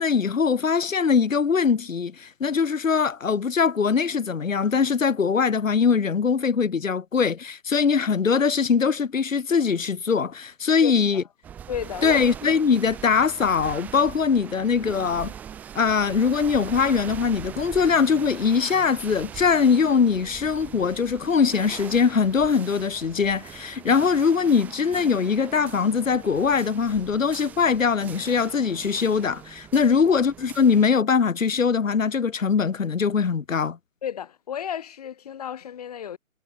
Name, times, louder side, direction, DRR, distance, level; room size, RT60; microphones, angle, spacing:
voice 1, 0.0-11.2 12.0-15.3 15.7-33.8, left 6 dB, 70° left, 1.7 m, -22 dB
voice 2, 10.8-11.2 11.7-12.2 34.0-36.2, left 9 dB, 30° left, 4.8 m, -33 dB
sound 1, 11.4-30.8, right 9 dB, 5° right, 1.8 m, -41 dB
hypercardioid pair, 170°, 40 cm